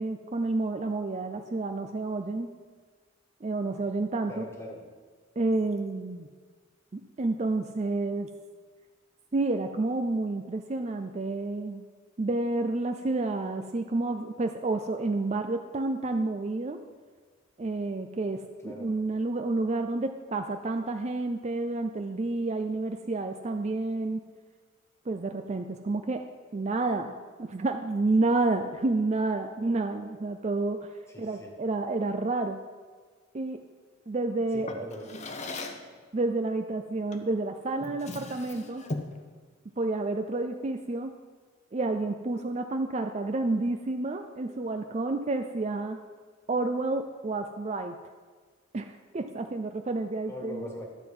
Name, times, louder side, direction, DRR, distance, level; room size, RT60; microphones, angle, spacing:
voice 1, 0.0-2.5 3.4-4.4 5.4-6.3 6.9-8.3 9.3-11.8 12.2-16.8 17.6-24.2 25.1-26.2 26.5-30.9 31.2-32.6 33.3-33.6 34.1-34.9 36.1-38.8 39.8-41.2 41.7-46.0 46.5-48.0 48.7-50.7, right 2 dB, 35° right, 6 dB, 0.5 m, -30 dB
voice 2, 4.3-4.9 18.6-19.0 31.1-31.6 34.5-35.3 50.3-50.9, equal, 15° left, 1 dB, 1.6 m, -41 dB
Drawer open or close, 34.6-35.9 37.1-37.3 37.7-39.2, left 2 dB, 35° left, 0.9 m, -38 dB
12.0 x 7.7 x 5.4 m, 1.5 s
head